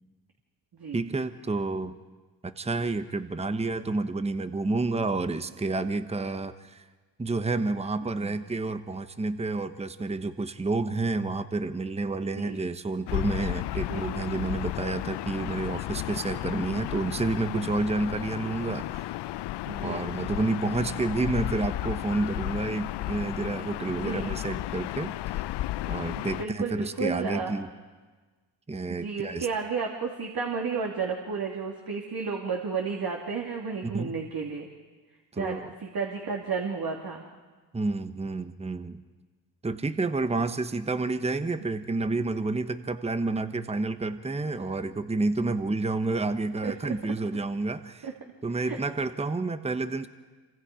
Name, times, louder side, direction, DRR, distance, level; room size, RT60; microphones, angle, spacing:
voice 1, 0.9-2.0 2.4-6.8 7.2-19.1 19.8-25.1 25.9-27.7 28.7-29.5 33.8-34.1 35.3-35.7 37.7-39.0 39.6-48.1 48.4-50.1, right 3 dB, 15° right, 10 dB, 1.1 m, -29 dB
Gull seagull / Ocean, 13.1-26.5, left 15 dB, 55° left, 0.6 m, -33 dB
voice 2, 13.9-14.3 19.7-20.0 24.0-24.3 26.2-27.6 28.9-34.7 35.3-37.2 46.6-46.7 48.0-48.1 48.5-48.8, right 5 dB, 45° right, 0 dB, 2.9 m, -32 dB
26.5 x 25.0 x 5.0 m, 1.3 s
supercardioid pair, 70°, 49 cm